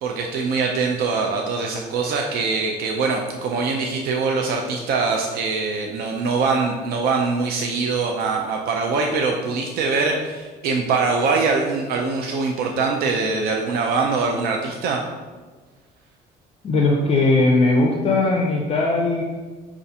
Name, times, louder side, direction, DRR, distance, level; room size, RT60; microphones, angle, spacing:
voice 1, 0.0-15.0, right 4 dB, 65° right, 1 dB, 0.4 m, -23 dB
voice 2, 16.6-19.2, left 2 dB, 35° left, 0 dB, 0.4 m, -19 dB
5.2 x 2.4 x 2.7 m, 1.3 s
cardioid pair, 110°, 17 cm